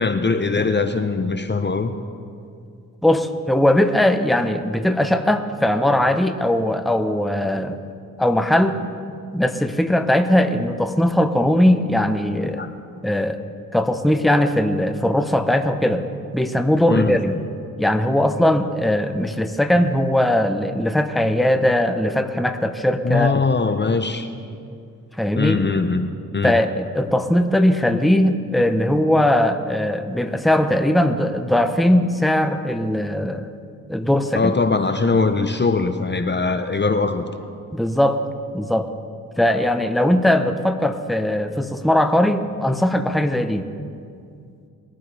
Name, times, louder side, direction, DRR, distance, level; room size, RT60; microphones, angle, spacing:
voice 1, 0.0-1.9 12.6-12.7 16.9-17.2 23.0-24.3 25.4-26.0 26.3-26.5 34.3-37.2, left 4 dB, 30° left, 8 dB, 0.8 m, -21 dB
voice 2, 3.0-7.8 8.2-8.8 9.3-12.6 13.0-13.4 13.7-16.0 16.3-17.4 17.8-23.3 25.2-25.6 26.4-33.5 33.9-34.6 37.7-38.2 38.5-38.9 39.4-43.7, left 1 dB, ahead, 7 dB, 0.9 m, -19 dB
21.0 x 11.5 x 3.4 m, 2.4 s
supercardioid pair, 45°, 36 cm